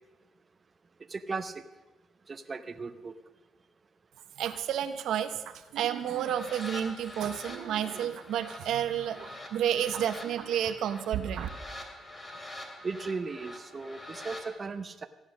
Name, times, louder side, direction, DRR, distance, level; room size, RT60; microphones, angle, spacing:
voice 1, 1.1-1.5 2.3-3.1 12.8-15.1, right 4 dB, 35° right, 8 dB, 0.9 m, -36 dB
voice 2, 4.4-11.5, right 10 dB, 80° right, 9 dB, 0.9 m, -31 dB
sound 1, 6.0-14.5, left 1 dB, 30° left, 2.8 m, -45 dB
15.0 x 10.0 x 6.3 m, 1.1 s
cardioid pair, 90°, 0 cm